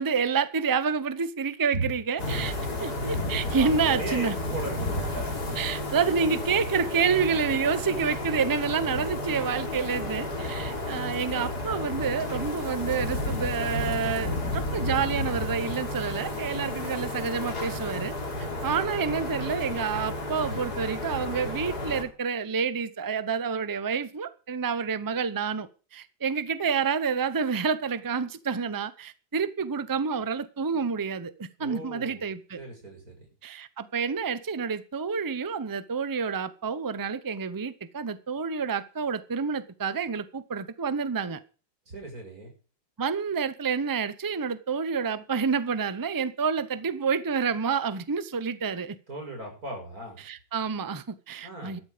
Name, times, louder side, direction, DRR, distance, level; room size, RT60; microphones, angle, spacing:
voice 1, 0.0-2.5 2.8-4.4 5.6-18.2 18.6-32.6 33.4-41.4 43.0-49.0 50.2-51.8, right 6 dB, 20° right, 0.5 m, -28 dB
sound 1, 2.2-22.0, left 2 dB, 60° left, 3.7 m, -32 dB
voice 2, 3.7-5.3 10.4-10.8 31.6-32.2 32.6-33.3 41.9-42.5 49.1-50.2 51.4-51.8, right 2 dB, 55° right, 6.7 m, -37 dB
13.0 x 12.5 x 5.1 m
omnidirectional pair, 1.9 m